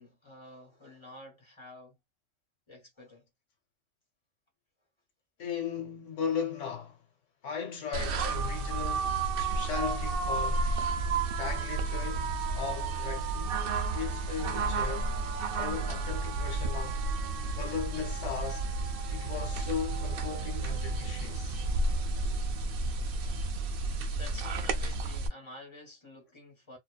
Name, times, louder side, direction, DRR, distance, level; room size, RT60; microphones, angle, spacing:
voice 1, 0.0-2.0 2.7-3.3 23.9-26.8, left 1 dB, 25° left, 1.0 m, -50 dB
voice 2, 5.4-7.0 7.4-10.7 11.4-13.7 13.9-15.1 15.6-17.0 17.5-18.7 19.1-21.6, left 7 dB, 75° left, 1.2 m, -37 dB
distant fire truck, 7.9-25.3, right 3 dB, 60° right, 0.6 m, -31 dB
2.5 x 2.2 x 2.3 m
omnidirectional pair, 1.3 m